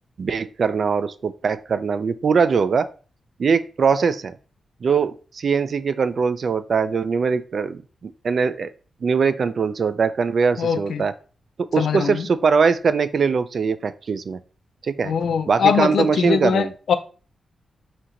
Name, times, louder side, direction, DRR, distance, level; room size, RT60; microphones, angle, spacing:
voice 1, 0.2-2.9 3.4-4.4 4.8-8.7 9.0-11.1 11.7-14.4 14.8-15.2 15.5-16.7, right 5 dB, 55° right, 13 dB, 0.3 m, -21 dB
voice 2, 10.6-11.1 11.8-12.3 15.0-16.9, left 7 dB, 80° left, 10 dB, 0.4 m, -22 dB
4.3 x 2.8 x 3.7 m, 0.37 s
wide cardioid pair, 120°, 0 cm